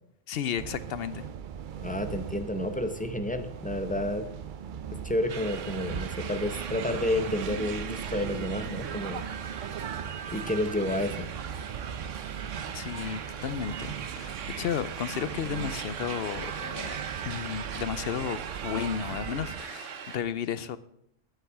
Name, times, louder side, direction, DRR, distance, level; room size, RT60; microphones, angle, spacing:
voice 1, 0.3-1.3 12.7-20.8, left 8 dB, 60° left, 0.7 m, -33 dB
sound 1, 0.6-19.6, right 8 dB, 60° right, 0.5 m, -39 dB
voice 2, 1.8-4.3 5.0-9.2 10.3-11.3, left 1 dB, 10° left, 0.6 m, -30 dB
sound 2, 5.3-20.2, right 7 dB, 75° right, 1.2 m, -39 dB
11.5 x 5.7 x 7.3 m
omnidirectional pair, 1.3 m